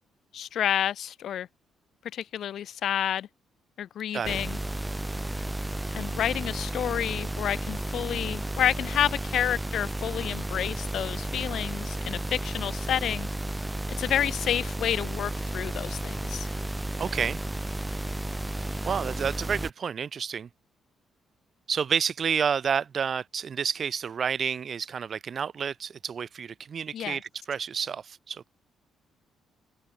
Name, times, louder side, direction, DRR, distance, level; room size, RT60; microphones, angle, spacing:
voice 1, 0.3-1.5 2.1-3.3 3.8-4.6 5.9-13.3 14.0-16.5 26.9-27.2, left 10 dB, 70° left, 1.4 m, -29 dB
sound 1, 4.2-19.7, right 1 dB, 10° right, 0.5 m, -33 dB
voice 2, 17.0-17.4 18.9-20.5 21.7-28.5, right 7 dB, 50° right, 2.0 m, -30 dB
open air
cardioid pair, 90°, 0 cm